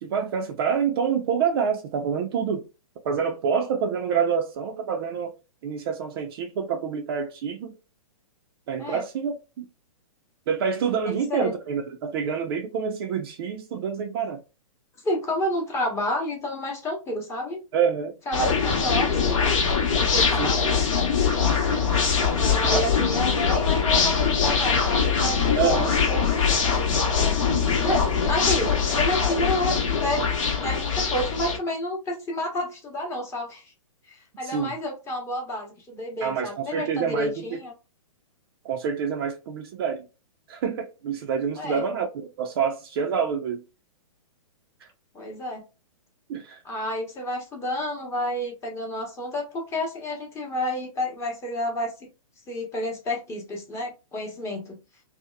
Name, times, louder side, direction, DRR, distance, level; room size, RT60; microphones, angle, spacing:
voice 1, 0.0-2.7 3.0-5.3 5.6-7.8 8.7-9.7 10.5-14.4 17.7-18.2 20.4-20.5 22.4-22.9 25.6-26.0 34.4-34.7 36.2-37.6 38.6-40.1 40.5-43.6 44.8-44.9 46.3-46.6, right 7 dB, 45° right, 0.4 m, -27 dB
voice 2, 11.1-11.5 15.0-17.6 18.3-19.5 20.0-20.7 22.4-26.4 27.1-27.4 27.8-30.2 30.6-33.6 34.1-37.7 41.5-41.8 45.1-45.6 46.6-51.9 52.5-54.7, left 1 dB, 15° left, 0.8 m, -30 dB
sound 1, 18.3-31.6, left 6 dB, 65° left, 0.9 m, -22 dB
2.8 x 2.0 x 2.2 m
hypercardioid pair, 125°, 18 cm